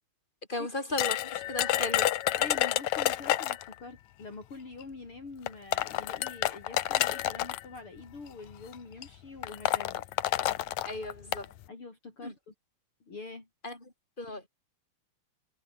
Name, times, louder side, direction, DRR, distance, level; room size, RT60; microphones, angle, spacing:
voice 1, 0.5-2.1 10.8-11.5 12.2-12.3 13.6-14.5, left 2 dB, 15° left, 7.2 m, -36 dB
sound 1, 1.0-3.7 4.8-4.9 5.5-7.6 8.5-8.7 9.0-9.1 9.4-11.5, left 14 dB, 70° left, 2.1 m, -29 dB
voice 2, 2.4-10.0 11.7-12.5 13.1-13.5, left 3 dB, 40° left, 5.4 m, -45 dB
omnidirectional pair, 3.8 m